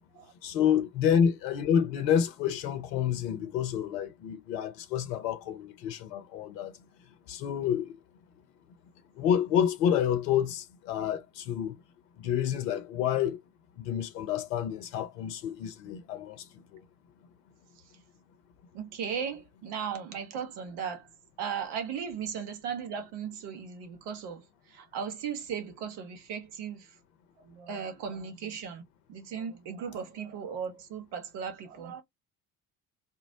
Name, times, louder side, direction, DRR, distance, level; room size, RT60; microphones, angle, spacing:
voice 1, 0.4-6.7 7.3-7.9 9.2-11.8 12.2-13.4 13.9-16.4, left 9 dB, 70° left, 0.7 m, -28 dB
voice 2, 18.7-21.1 21.4-24.4 24.7-26.9 27.5-28.8 29.1-32.0, right 7 dB, 55° right, 1.1 m, -37 dB
3.9 x 2.0 x 2.7 m
figure-of-eight pair, 55°, 49 cm